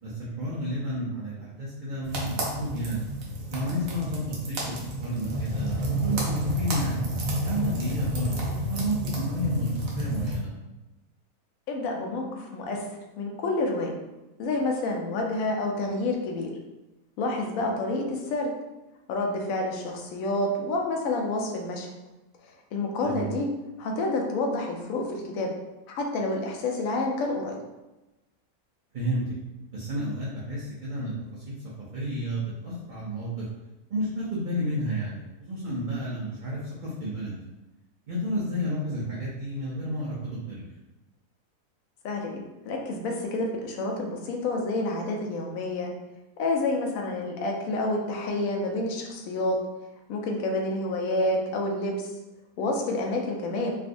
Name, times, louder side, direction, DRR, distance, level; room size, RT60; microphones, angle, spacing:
voice 1, 0.0-3.0 3.5-7.0 7.4-10.5 23.0-23.3 28.9-29.3 29.7-31.6 31.9-33.5 33.9-37.4 38.1-40.7, equal, 55° right, -7 dB, 0.5 m, -31 dB
sound 1, 2.0-10.4, equal, 70° right, 1.1 m, -30 dB
voice 2, 11.7-12.8 13.2-14.0 14.4-16.5 17.2-18.5 19.1-21.9 22.7-23.5 23.8-25.5 25.9-27.5 42.0-45.9 46.4-49.6 50.1-52.1 52.6-53.7, left 2 dB, 75° left, 1 dB, 1.0 m, -28 dB
3.5 x 2.4 x 2.5 m, 1.0 s
omnidirectional pair, 1.5 m